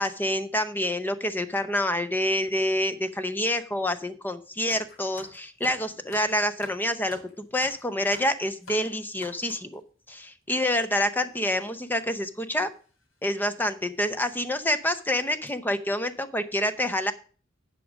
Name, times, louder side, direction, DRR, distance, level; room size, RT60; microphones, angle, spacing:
voice 1, 0.0-9.8 10.1-12.7 13.2-17.1, left 1 dB, 10° left, 11 dB, 0.6 m, -27 dB
sound 1, 4.7-9.7 10.5-10.7 11.4-11.5 11.7-11.9 12.8-13.0 13.5-13.6 14.1-14.2 14.7-14.9 15.3-15.5, left 2 dB, 85° left, 2.9 m, -48 dB
10.5 x 5.0 x 6.2 m, 0.40 s
head